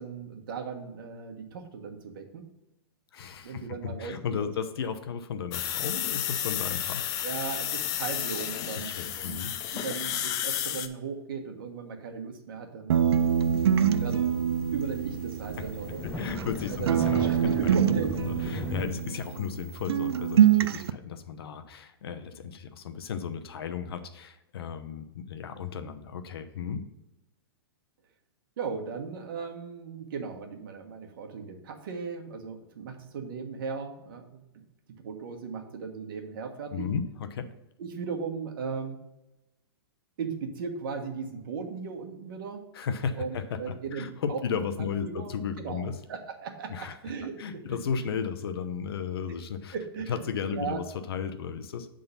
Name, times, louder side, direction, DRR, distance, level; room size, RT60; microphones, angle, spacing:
voice 1, 0.0-2.5 3.4-4.5 7.2-13.0 14.0-14.2 14.7-16.1 16.7-16.9 17.2-18.2 28.6-34.6 35.0-36.9 37.8-39.0 40.2-42.6 43.2-45.3 45.6-48.1 49.7-50.2 50.5-50.8, right 5 dB, 60° right, 4 dB, 1.4 m, -37 dB
voice 2, 3.1-7.1 8.8-9.5 15.6-15.7 16.0-17.8 18.1-26.8 36.7-37.5 42.7-46.0 46.7-47.0 47.4-49.7 50.1-51.9, left 7 dB, 75° left, 8 dB, 0.9 m, -34 dB
sound 1, 5.5-10.9, left 11 dB, 25° left, 0.5 m, -32 dB
sound 2, 12.9-16.6 16.9-19.6 19.9-20.9, right 9 dB, 90° right, 0.4 m, -25 dB
sound 3, 13.2-18.9, left 2 dB, 10° left, 0.8 m, -38 dB
7.9 x 3.8 x 5.5 m, 0.95 s
hypercardioid pair, 150°, 13 cm